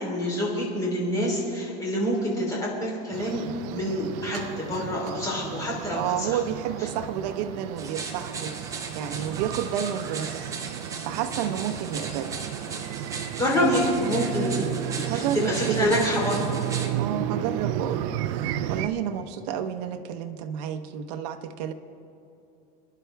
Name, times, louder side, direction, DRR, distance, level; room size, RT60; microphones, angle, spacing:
voice 1, 0.0-3.4 3.7-6.3 13.4-14.6 14.9-16.4, equal, 15° left, -4 dB, 3.4 m, -26 dB
sound 1, 3.1-18.9, right 12 dB, 60° right, 0.6 m, -33 dB
voice 2, 5.9-8.6 8.9-10.5 11.0-12.4 13.7-13.8 15.1-16.0 17.0-18.1 18.7-21.7, right 9 dB, 80° right, 6 dB, 0.9 m, -30 dB
sound 2, 7.8-16.9, right 4 dB, 15° right, 1.0 m, -38 dB
26.0 x 11.0 x 3.4 m, 2.7 s
cardioid pair, 165°, 21 cm